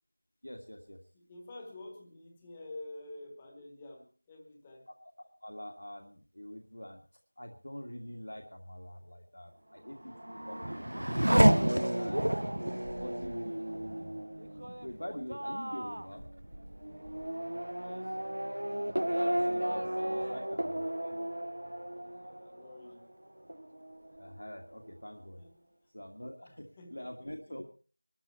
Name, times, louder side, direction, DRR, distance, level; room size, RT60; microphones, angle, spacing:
voice 1, 0.4-1.0 4.9-7.0 7.4-11.0 12.0-14.2 14.8-16.3 19.1-21.2 24.2-25.4 25.9-27.7, equal, 65° left, 3 dB, 2.1 m, -45 dB
voice 2, 1.1-4.9 17.7-18.2 22.2-23.2 25.4-25.9 26.4-27.7, left 2 dB, 10° left, 3 dB, 1.3 m, -49 dB
Race car auto racing / Accelerating revving vroom, 9.9-23.1 23.5-24.2, right 1 dB, 60° right, 0.8 m, -31 dB
20.5 x 13.0 x 4.3 m, 0.39 s
figure-of-eight pair, 175°, 0 cm